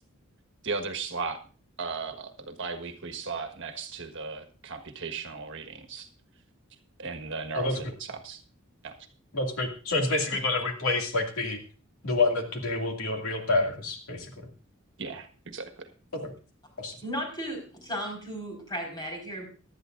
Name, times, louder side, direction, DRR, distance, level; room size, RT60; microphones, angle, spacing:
voice 1, 0.6-1.4 1.8-6.1 7.0-8.4 8.8-8.9 15.0-15.9, right 4 dB, 60° right, 7 dB, 1.5 m, -36 dB
voice 2, 7.5-7.9 9.3-11.6 12.0-14.5 16.1-16.3 16.8-17.0, left 2 dB, 80° left, 3 dB, 2.4 m, -28 dB
voice 3, 17.0-19.5, equal, 20° left, 2 dB, 4.8 m, -35 dB
18.0 x 12.0 x 2.6 m, 0.36 s
head